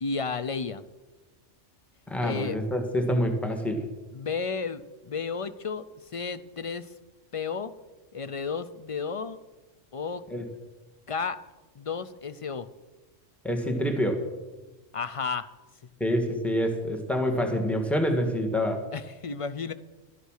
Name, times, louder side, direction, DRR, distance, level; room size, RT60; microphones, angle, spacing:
voice 1, 0.0-0.8 2.2-2.6 4.1-5.8 6.1-6.9 7.3-7.7 8.1-9.4 9.9-10.2 11.1-11.4 11.8-12.7 14.9-15.5 18.9-19.7, left 5 dB, 50° left, 13 dB, 0.4 m, -32 dB
voice 2, 2.1-3.8 10.3-10.4 13.4-14.2 16.0-18.9, equal, ahead, 3 dB, 1.7 m, -27 dB
12.5 x 11.0 x 6.5 m, 1.2 s
omnidirectional pair, 1.3 m